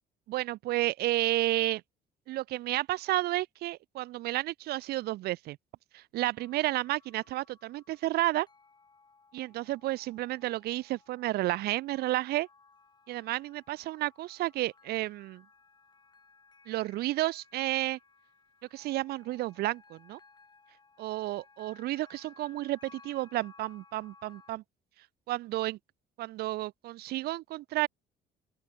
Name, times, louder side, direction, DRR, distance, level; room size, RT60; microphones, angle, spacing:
voice 1, 0.3-1.8 2.3-5.6 5.9-8.5 9.3-12.5 13.1-15.4 16.7-18.0 18.7-20.2 21.0-24.6 25.3-25.8 26.2-27.9, right 17 dB, 70° right, 0.5 m, -31 dB
sound 1, 6.4-24.5, left 4 dB, 25° left, 7.9 m, -60 dB
open air
cardioid pair, 110°, 17 cm